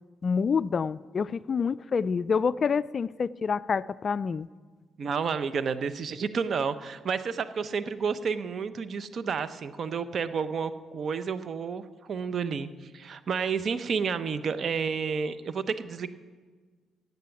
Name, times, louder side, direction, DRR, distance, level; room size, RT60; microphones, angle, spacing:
voice 1, 0.2-4.5, left 5 dB, 45° left, 18 dB, 0.3 m, -27 dB
voice 2, 5.0-16.1, right 6 dB, 55° right, 13 dB, 0.7 m, -30 dB
15.0 x 9.1 x 7.1 m, 1.5 s
cardioid pair, 90°, 0 cm